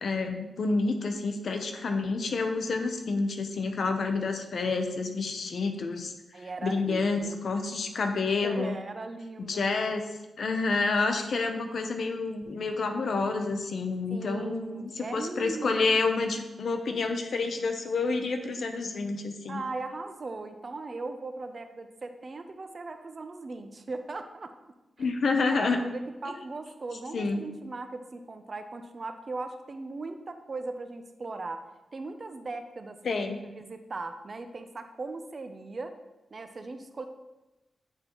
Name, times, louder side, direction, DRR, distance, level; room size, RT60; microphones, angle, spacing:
voice 1, 0.0-6.1 6.6-8.8 9.4-10.0 10.4-19.6 25.0-25.8 27.1-27.4 33.0-33.4, left 3 dB, 60° left, 5 dB, 0.6 m, -29 dB
voice 2, 6.3-7.4 8.4-9.7 14.1-16.0 19.5-24.5 25.0-25.1 25.5-31.6 31.9-36.0 36.3-37.1, right 3 dB, 35° right, 8 dB, 0.4 m, -38 dB
8.7 x 3.9 x 3.0 m, 1.0 s
wide cardioid pair, 150°, 0 cm